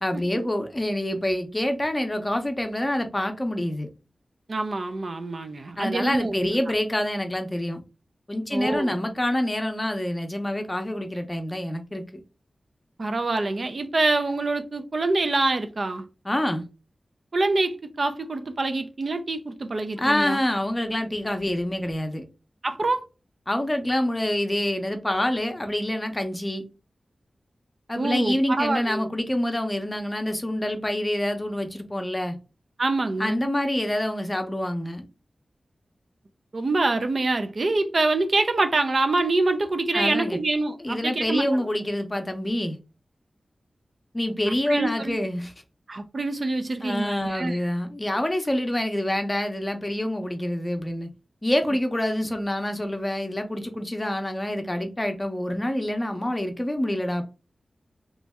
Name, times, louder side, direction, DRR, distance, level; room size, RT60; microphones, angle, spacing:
voice 1, 0.0-3.9 5.8-7.8 8.3-12.0 16.2-16.6 20.0-22.2 23.5-26.6 27.9-32.4 33.2-35.1 39.9-40.4 40.8-42.8 44.1-45.5 46.8-51.1 51.4-57.2, left 1 dB, 20° left, 0.7 m, -26 dB
voice 2, 4.5-6.6 8.5-9.0 13.0-16.1 17.3-20.4 22.6-23.1 28.0-29.1 32.8-33.4 36.5-41.5 44.5-45.2 45.9-47.6, right 2 dB, 50° right, 0.5 m, -25 dB
3.0 x 2.6 x 3.4 m
wide cardioid pair, 95°, 0 cm